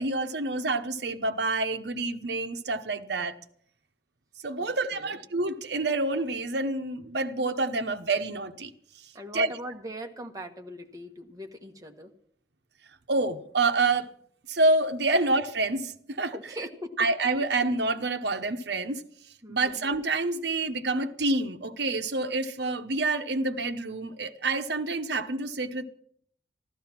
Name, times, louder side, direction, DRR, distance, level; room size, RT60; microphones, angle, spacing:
voice 1, 0.0-3.4 4.4-8.7 9.3-9.5 13.1-14.1 14.5-16.4 17.0-19.0 19.5-25.8, right 2 dB, 65° right, 1.0 m, -27 dB
voice 2, 4.6-5.2 9.1-12.1 16.3-17.1 19.4-19.9, right 1 dB, 20° right, 1.3 m, -40 dB
14.0 x 13.0 x 5.9 m
head